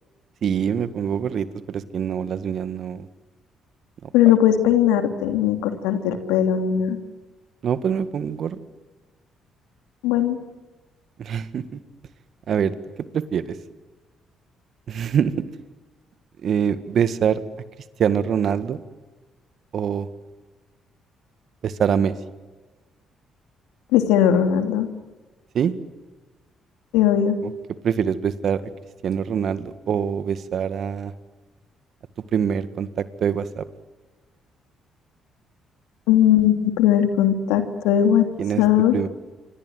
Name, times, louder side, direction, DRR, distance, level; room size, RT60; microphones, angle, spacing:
voice 1, 0.4-3.1 4.0-4.1 7.6-8.6 11.2-11.8 12.5-12.7 13.1-13.6 14.9-15.3 16.4-17.4 18.0-18.8 19.7-20.1 21.6-22.1 25.5-25.7 27.4-27.5 27.8-28.6 29.0-31.1 32.3-33.7 38.4-38.6 38.9-39.1, right 8 dB, 60° right, 13 dB, 1.8 m, -24 dB
voice 2, 4.1-7.0 10.0-10.4 23.9-24.9 26.9-27.4 36.1-38.3 38.6-38.9, left 10 dB, 80° left, 8 dB, 2.6 m, -18 dB
27.5 x 25.0 x 7.9 m, 1.2 s
hypercardioid pair, 50°, 0 cm